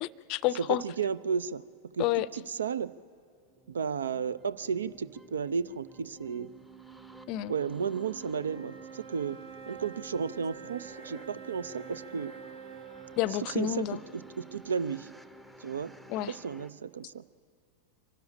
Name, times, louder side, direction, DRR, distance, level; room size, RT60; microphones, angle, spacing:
voice 1, 0.0-0.8 2.0-2.3 7.3-7.5 13.2-14.0 16.1-16.3, left 14 dB, 40° left, 20 dB, 0.5 m, -29 dB
voice 2, 0.6-1.6 1.9-3.0 3.7-6.5 7.5-9.4 9.7-12.3 13.5-13.9 14.1-15.1 15.6-15.9 16.3-17.2, right 6 dB, 70° right, 19 dB, 0.5 m, -33 dB
sound 1, 3.4-16.7, equal, 5° right, 0.7 m, -54 dB
sound 2, 6.0-15.5, right 7 dB, 50° right, 1.0 m, -48 dB
24.5 x 12.5 x 9.9 m, 2.3 s
figure-of-eight pair, 90°, 0 cm